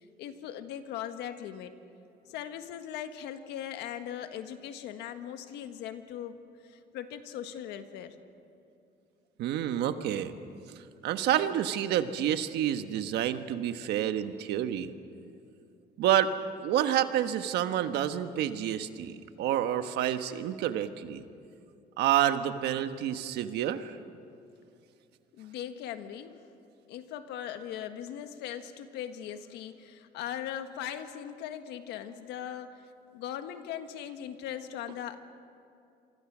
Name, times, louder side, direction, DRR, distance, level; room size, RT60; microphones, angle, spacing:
voice 1, 0.0-1.7 2.3-8.2 25.3-26.4 26.9-32.8 33.1-35.2, left 10 dB, 85° left, 8 dB, 1.5 m, -39 dB
voice 2, 9.4-10.3 10.7-14.9 16.0-16.3 16.6-21.2 22.0-24.0, right 11 dB, 80° right, 9 dB, 1.3 m, -29 dB
27.0 x 24.5 x 6.2 m, 2.5 s
cardioid pair, 110°, 17 cm